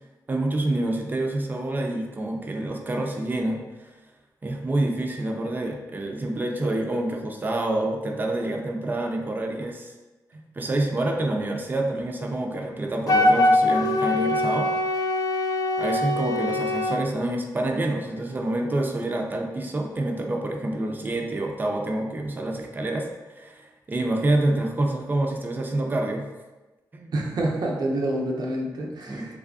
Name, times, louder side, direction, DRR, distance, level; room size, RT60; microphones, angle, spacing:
voice 1, 0.3-3.6 4.4-9.9 10.5-14.7 15.8-23.1 23.3-26.3 26.9-27.1 29.1-29.4, right 1 dB, 25° right, 2 dB, 0.4 m, -27 dB
Wind instrument woodwind instrument, 13.1-17.0, left 1 dB, 55° left, 0.4 m, -22 dB
voice 2, 27.1-29.4, right 1 dB, 70° right, 0 dB, 0.6 m, -27 dB
3.5 x 3.2 x 2.4 m, 1.1 s
wide cardioid pair, 115°, 7 cm